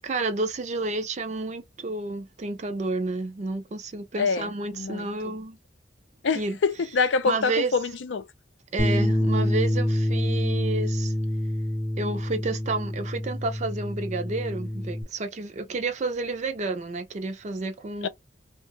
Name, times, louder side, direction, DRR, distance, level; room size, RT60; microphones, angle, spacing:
voice 1, 0.0-5.6 6.3-6.6 7.2-7.7 8.7-11.1 12.0-18.1, right 3 dB, 40° right, 0.4 m, -30 dB
voice 2, 4.2-4.5 4.7-5.1 6.2-8.2 18.0-18.1, left 5 dB, 85° left, 0.5 m, -25 dB
Bass guitar, 8.8-15.0, left 1 dB, 20° left, 0.6 m, -26 dB
2.8 x 2.1 x 3.4 m
head